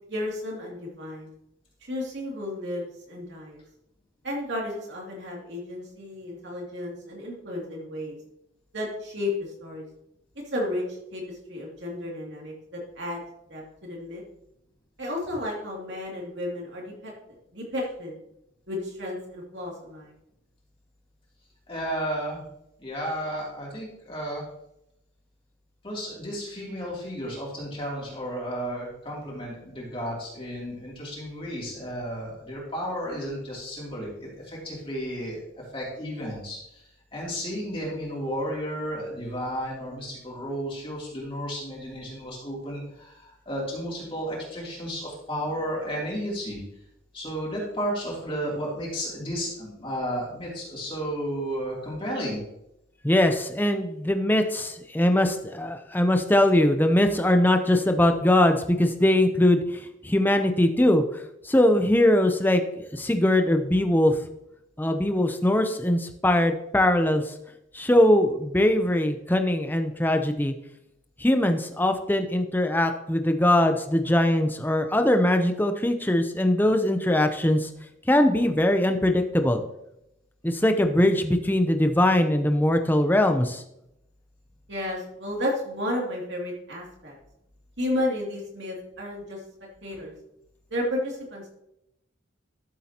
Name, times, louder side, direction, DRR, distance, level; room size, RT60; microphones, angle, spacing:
voice 1, 0.1-1.3 1.8-3.6 4.2-8.2 8.7-9.8 10.5-13.2 13.5-14.2 15.0-17.1 17.5-18.2 18.7-20.1 84.7-87.1 87.8-89.4 89.8-90.1 90.7-91.5, left 1 dB, 60° right, -2 dB, 2.7 m, -32 dB
voice 2, 21.7-22.4 22.8-24.4 25.8-35.4 35.7-36.8 37.1-46.6 47.1-52.4, equal, 25° left, -4 dB, 2.9 m, -33 dB
voice 3, 53.0-62.6 62.9-64.2 64.8-67.3 67.7-70.5 71.2-77.7 78.1-79.6 80.4-83.6, left 1 dB, 10° left, 6 dB, 0.6 m, -21 dB
12.5 x 7.4 x 2.9 m, 0.83 s
head